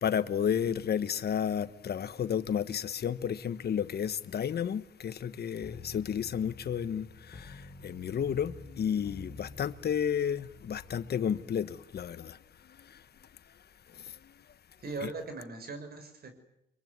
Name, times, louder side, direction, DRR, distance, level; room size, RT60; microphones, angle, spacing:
voice 1, 0.0-14.5 15.0-15.1, left 8 dB, 55° left, 1.3 m, -32 dB
sound 1, 5.6-11.1, left 3 dB, 25° left, 5.4 m, -49 dB
voice 2, 14.8-16.4, right 3 dB, 50° right, 5.8 m, -40 dB
25.0 x 23.0 x 9.6 m
cardioid pair, 90°, 20 cm